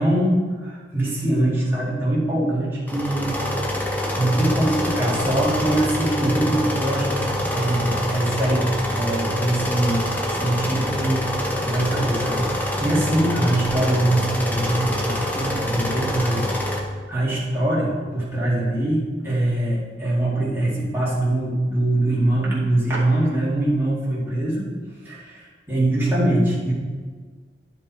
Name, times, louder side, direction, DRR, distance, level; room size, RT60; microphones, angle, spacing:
voice 1, 0.0-3.5 4.2-10.0 10.3-16.5 16.9-24.7 25.0-26.7, right 1 dB, 15° right, -8 dB, 2.1 m, -23 dB
sound 1, 2.9-16.8, left 1 dB, 10° left, 0.8 m, -26 dB
10.0 x 5.3 x 4.2 m, 1.5 s
head